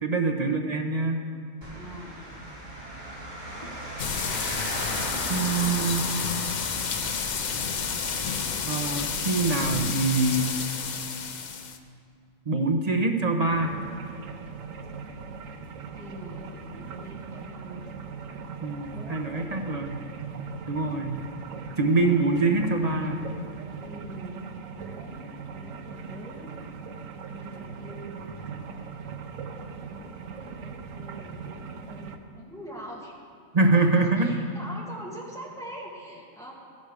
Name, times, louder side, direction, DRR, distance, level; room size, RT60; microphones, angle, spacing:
voice 1, 0.0-1.2 5.3-6.1 8.7-10.5 12.5-13.8 18.6-20.0 20.7-21.2 21.8-23.2 33.5-34.3, right 3 dB, 35° right, 4 dB, 0.8 m, -24 dB
sound 1, 1.6-8.5, right 1 dB, 20° right, 3.0 m, -37 dB
voice 2, 1.7-2.3 15.9-17.9 18.9-19.9 23.8-24.4 24.8-26.5 27.3-28.2 29.9-33.2 33.6-36.5, equal, ahead, -4 dB, 2.1 m, -44 dB
sound 2, 4.0-11.8, left 6 dB, 50° left, 0.6 m, -30 dB
sound 3, 13.4-32.2, right 5 dB, 80° right, 1.2 m, -40 dB
13.5 x 11.0 x 4.9 m, 2.5 s
omnidirectional pair, 1.4 m